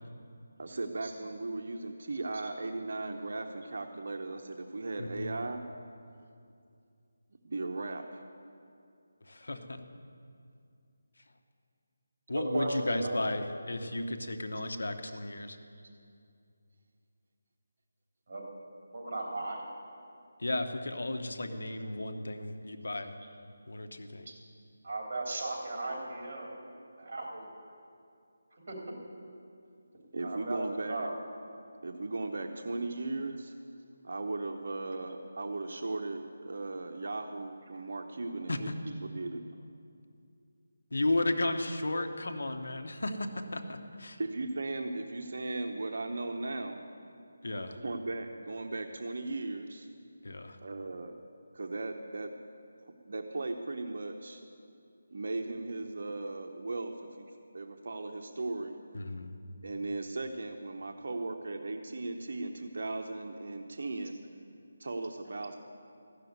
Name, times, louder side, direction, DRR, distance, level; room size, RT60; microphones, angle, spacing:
voice 1, 0.6-5.6 7.4-8.2 30.1-31.1 31.8-33.5 34.0-38.7 39.0-39.4 44.2-46.8 47.7-49.9 50.6-51.2 51.5-52.3 53.1-54.4 55.1-57.3 57.5-58.8 59.6-64.2 64.8-65.6, right 2 dB, 60° right, 4 dB, 0.8 m, -37 dB
voice 2, 2.1-2.5 12.3-13.3 18.3-18.4 18.9-19.7 24.2-24.3 24.8-26.5 27.0-27.4 28.7-28.8 30.2-30.6 30.9-31.1, right 2 dB, 40° right, -2 dB, 3.3 m, -36 dB
voice 3, 5.0-5.3 9.2-9.8 12.3-15.6 20.4-23.1 23.7-24.3 38.5-38.6 40.9-44.2 47.4-47.8 50.2-50.6 58.9-59.4, left 2 dB, 80° left, 6 dB, 1.1 m, -34 dB
14.5 x 6.8 x 9.4 m, 2.4 s
figure-of-eight pair, 170°, 0 cm